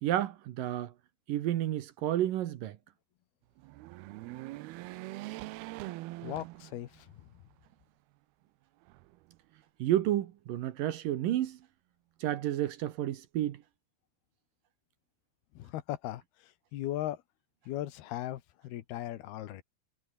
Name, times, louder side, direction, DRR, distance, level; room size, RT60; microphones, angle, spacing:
voice 1, 0.0-0.9 1.3-2.8 9.8-11.6 12.2-13.6, right 12 dB, 70° right, 2.6 m, -31 dB
sound 1, 3.6-7.2 7.7-7.8 8.8-9.6, right 19 dB, 85° right, 2.6 m, -43 dB
voice 2, 6.2-7.3 15.5-17.2 17.7-19.6, left 13 dB, 80° left, 3.2 m, -38 dB
omnidirectional pair, 4.6 m